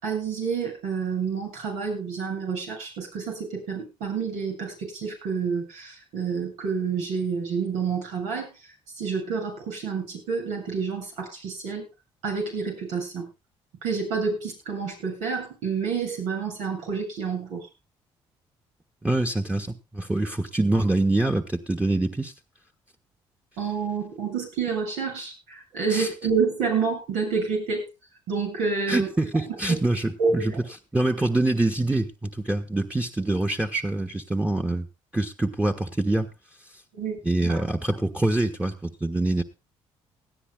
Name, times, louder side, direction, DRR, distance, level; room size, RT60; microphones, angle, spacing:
voice 1, 0.0-8.6 9.0-11.9 12.2-13.3 13.8-17.7 23.6-27.9 28.3-29.1 29.7-29.8 30.2-30.6 36.9-37.2 37.5-37.6, right 5 dB, 90° right, 1 dB, 7.5 m, -28 dB
voice 2, 19.0-22.3 25.9-26.1 28.9-30.5 30.9-34.9 35.1-36.3 37.2-39.4, right 2 dB, 10° right, 5 dB, 1.3 m, -25 dB
19.5 x 13.5 x 2.3 m, 0.27 s
supercardioid pair, 70°, 12 cm